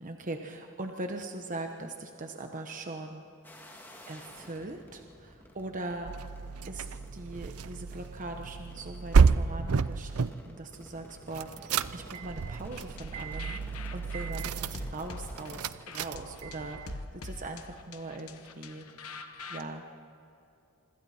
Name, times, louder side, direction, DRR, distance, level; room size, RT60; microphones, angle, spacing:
voice 1, 0.0-3.2 4.1-6.1 6.7-6.9 7.1-18.8 19.5-19.8, right 2 dB, 35° right, 4 dB, 1.1 m, -40 dB
sound 1, 3.4-15.7, equal, 10° left, 2.6 m, -52 dB
sound 2, 6.0-10.3 11.3-17.0, right 5 dB, 80° right, 0.5 m, -30 dB
sound 3, 12.7-19.6, left 3 dB, 80° left, 1.2 m, -44 dB
26.0 x 25.0 x 4.4 m, 2.7 s
head